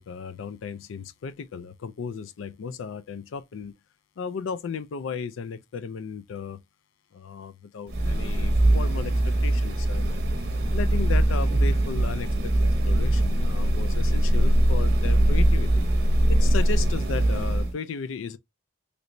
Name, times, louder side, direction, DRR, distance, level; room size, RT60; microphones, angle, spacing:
voice 1, 0.0-3.7 4.2-6.6 7.1-10.3 10.7-12.5 12.8-15.8 16.3-18.4, left 5 dB, 85° left, 0.4 m, -35 dB
sound 1, 7.9-17.7, right 1 dB, 55° right, 0.7 m, -22 dB
3.2 x 2.6 x 2.9 m
head